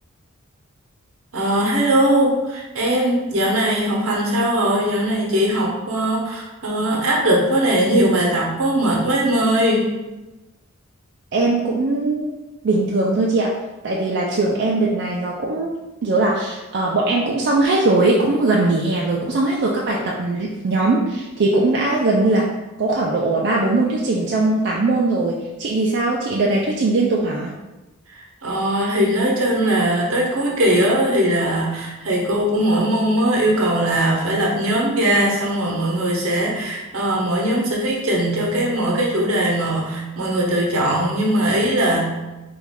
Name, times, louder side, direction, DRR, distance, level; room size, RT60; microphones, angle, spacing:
voice 1, 1.3-9.9 28.1-42.1, right 1 dB, 75° right, -2 dB, 0.8 m, -20 dB
voice 2, 11.3-12.3 12.6-13.5 13.8-15.7 16.0-22.5 22.8-27.5, right 2 dB, 50° right, -3 dB, 0.3 m, -20 dB
3.0 x 2.4 x 3.5 m, 1.1 s
head